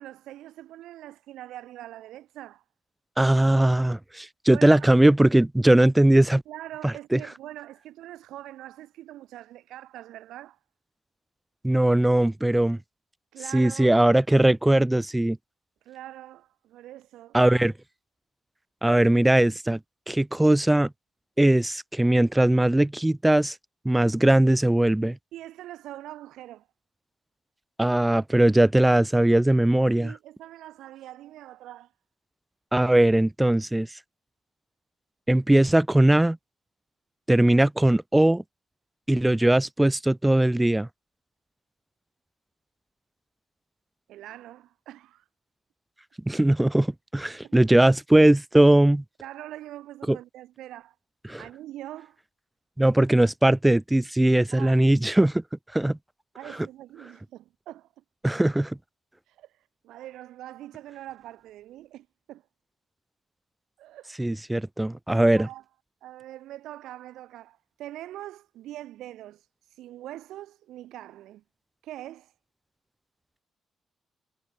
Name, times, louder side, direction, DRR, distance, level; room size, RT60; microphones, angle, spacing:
voice 1, 0.0-2.6 4.5-4.9 6.5-10.6 13.3-13.9 15.8-17.4 25.3-26.7 29.9-31.9 44.1-45.3 47.4-47.5 49.2-50.9 51.4-52.2 54.5-54.8 56.3-58.0 59.3-62.4 63.8-64.3 65.4-65.6 66.0-71.4 71.8-72.3, right 14 dB, 85° right, 1.1 m, -43 dB
voice 2, 3.2-6.4 6.8-7.2 11.6-12.8 13.5-15.4 17.3-17.7 18.8-19.8 20.1-20.9 21.4-23.5 23.8-25.2 27.8-30.1 32.7-33.9 35.3-36.4 37.3-38.4 39.1-40.9 46.3-49.0 50.1-50.2 51.3-51.4 52.8-55.4 55.7-56.0 58.2-58.8 64.2-65.5, right 1 dB, 10° right, 1.0 m, -20 dB
cardioid pair, 85°, 0 cm